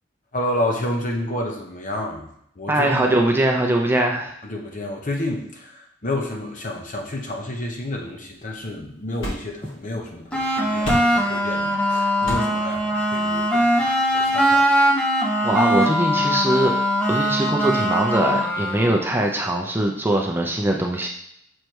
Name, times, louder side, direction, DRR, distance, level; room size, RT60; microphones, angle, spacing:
voice 1, 0.3-3.3 4.4-14.7, left 1 dB, 45° left, 1 dB, 1.1 m, -30 dB
voice 2, 2.7-4.3 15.4-16.7 17.1-21.1, right 1 dB, 10° right, 1 dB, 0.6 m, -21 dB
sound 1, 7.5-14.6, equal, 70° left, 2.0 m, -36 dB
sound 2, 10.3-19.1, equal, 5° left, 0.9 m, -21 dB
6.4 x 3.4 x 4.6 m, 0.72 s
head